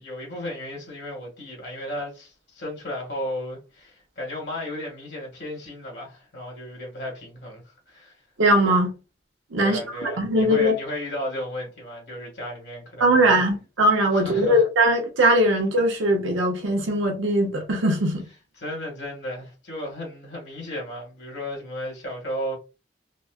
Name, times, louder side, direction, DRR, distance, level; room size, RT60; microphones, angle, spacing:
voice 1, 0.0-8.1 9.6-13.5 14.1-14.6 18.6-22.5, equal, 65° left, 1.7 m, -34 dB
voice 2, 8.4-8.9 9.5-9.8 10.2-10.7 13.0-18.3, right 1 dB, 90° right, 0.9 m, -20 dB
4.1 x 2.1 x 2.4 m
head